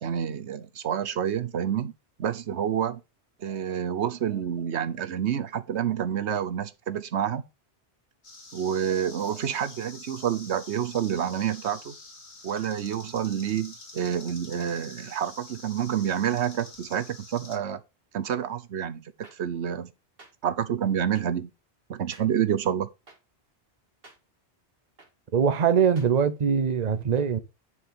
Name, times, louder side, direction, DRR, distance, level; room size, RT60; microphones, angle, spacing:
voice 1, 0.0-1.9 2.2-3.0 3.4-7.4 8.5-11.9 12.4-17.8 18.1-19.9 20.4-21.5 21.9-22.9, right 9 dB, 90° right, 1.1 m, -28 dB
sound 1, 8.2-17.6, left 3 dB, 80° left, 2.2 m, -46 dB
sound 2, 19.2-19.3 20.2-20.3 21.1-21.2 22.1-22.2 23.1-23.2 24.0-24.2 25.0-25.1 26.0-26.1, right 2 dB, 60° right, 2.2 m, -50 dB
voice 2, 25.3-27.4, right 7 dB, 45° right, 0.9 m, -22 dB
9.8 x 4.8 x 5.7 m
omnidirectional pair, 1.1 m